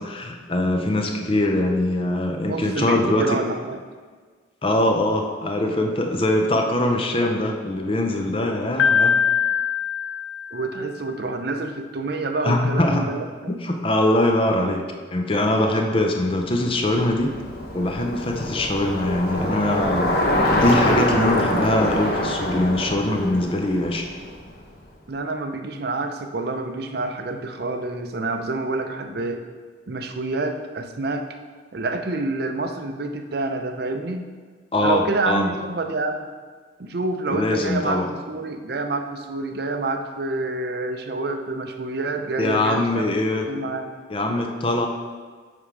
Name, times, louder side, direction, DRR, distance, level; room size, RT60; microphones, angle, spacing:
voice 1, 0.0-3.4 4.6-9.2 12.4-13.1 13.5-14.8 15.1-17.3 17.7-20.1 20.4-24.1 34.7-35.5 37.3-38.1 42.4-43.5 44.1-44.9, left 1 dB, 30° left, 3 dB, 0.5 m, -22 dB
voice 2, 2.5-3.8 10.5-13.2 25.1-29.4 29.9-31.3 31.7-34.2 34.8-36.3 36.8-43.1 43.5-43.9, right 2 dB, 55° right, 6 dB, 0.5 m, -27 dB
Piano, 8.8-10.9, left 6 dB, 85° left, 0.5 m, -22 dB
Bicycle, 16.4-24.7, left 1 dB, 50° left, 1.0 m, -25 dB
8.4 x 3.7 x 4.9 m, 1.5 s
head